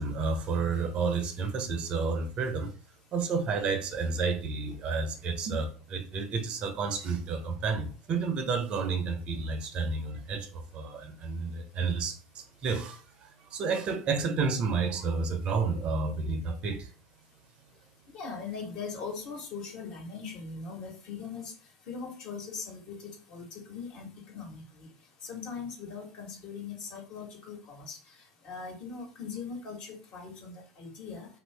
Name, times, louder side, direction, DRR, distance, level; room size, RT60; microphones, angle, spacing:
voice 1, 0.0-2.7 3.1-16.9, right 4 dB, 45° right, 0.6 m, -31 dB
voice 2, 18.1-21.5 21.9-24.9 25.2-28.0 28.4-31.3, left 5 dB, 55° left, 1.3 m, -40 dB
2.7 x 2.6 x 3.4 m
hypercardioid pair, 85°, 2 cm